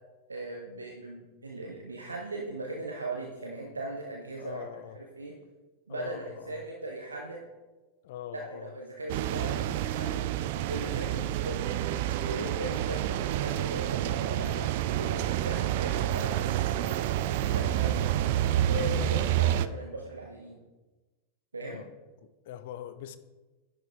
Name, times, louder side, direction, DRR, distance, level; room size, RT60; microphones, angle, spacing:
voice 1, 0.3-4.7 5.1-5.3 5.9-7.4 8.3-10.3 10.7-11.7 12.2-14.7 15.0-16.5 17.4-18.1 18.7-20.6 21.5-21.8, right 2 dB, 75° right, 0 dB, 0.9 m, -38 dB
voice 2, 4.4-5.0 5.9-6.6 8.0-8.7 19.1-19.4 21.6-21.9 22.2-23.2, left 10 dB, 55° left, 12 dB, 0.5 m, -43 dB
sound 1, 9.1-19.7, right 12 dB, 50° right, 0.3 m, -28 dB
10.5 x 5.4 x 3.6 m, 1.2 s
figure-of-eight pair, 90°, 0 cm